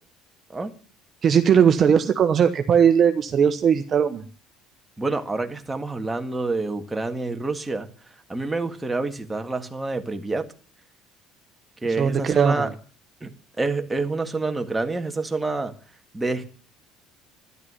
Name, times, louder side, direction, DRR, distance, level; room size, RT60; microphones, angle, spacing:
voice 1, 1.2-4.2 11.8-12.7, right 7 dB, 35° right, 1.2 m, -19 dB
voice 2, 5.0-7.9 8.3-10.5 11.8-12.7 13.2-13.3 13.6-15.7 16.1-16.5, right 3 dB, 10° right, 1.8 m, -27 dB
12.5 x 11.5 x 9.8 m
cardioid pair, 140°, 0 cm